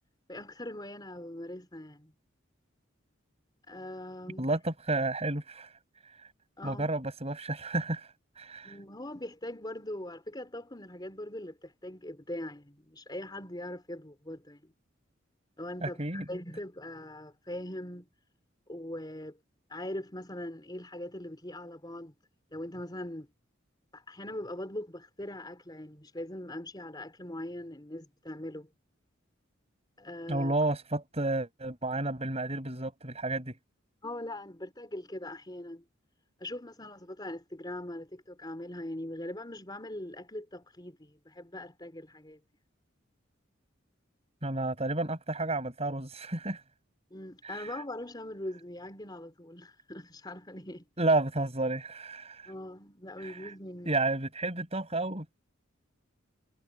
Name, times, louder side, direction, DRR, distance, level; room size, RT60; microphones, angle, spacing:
voice 1, 0.3-2.1 3.7-4.6 6.6-6.9 8.6-14.7 15.6-18.1 18.7-19.4 19.7-22.1 22.5-23.3 23.9-28.7 30.0-30.5 34.0-35.8 36.4-42.4 47.1-50.9 52.5-53.9, left 1 dB, 20° left, 3.7 m, -41 dB
voice 2, 4.4-5.7 6.0-6.3 6.6-8.1 8.4-8.7 15.8-16.2 30.3-33.6 44.4-46.6 47.4-47.8 51.0-52.5 53.2-53.5 53.9-55.3, right 2 dB, 30° right, 5.9 m, -31 dB
head